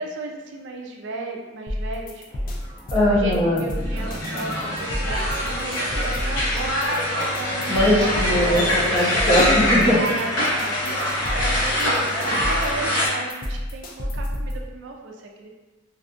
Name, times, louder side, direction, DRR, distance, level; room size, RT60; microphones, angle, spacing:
voice 1, 0.0-2.2 3.1-7.0 7.3-8.9 9.9-15.5, right 3 dB, 70° right, 1 dB, 0.4 m, -34 dB
sound 1, 1.7-14.6, left 1 dB, 45° left, 0.4 m, -30 dB
sound 2, 2.3-6.8 9.2-9.4, equal, 10° right, 0.5 m, -40 dB
voice 2, 2.9-3.6 7.7-10.0, left 1 dB, 30° left, -8 dB, 0.8 m, -20 dB
sound 3, 3.9-13.1, equal, 80° left, 0.9 m, -24 dB
2.6 x 2.4 x 2.4 m, 1.2 s
head